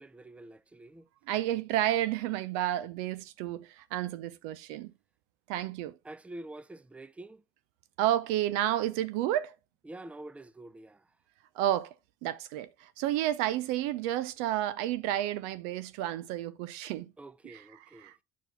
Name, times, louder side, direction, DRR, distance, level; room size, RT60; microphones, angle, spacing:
voice 1, 0.0-1.1 6.0-7.4 9.8-11.1 17.2-18.1, right 2 dB, 10° right, 0.6 m, -47 dB
voice 2, 1.3-4.9 5.5-6.0 8.0-9.5 11.5-11.9 12.2-17.1 17.4-17.6 18.0-18.2, right 13 dB, 65° right, 0.6 m, -31 dB
9.2 x 4.5 x 3.2 m
hypercardioid pair, 65°, 12 cm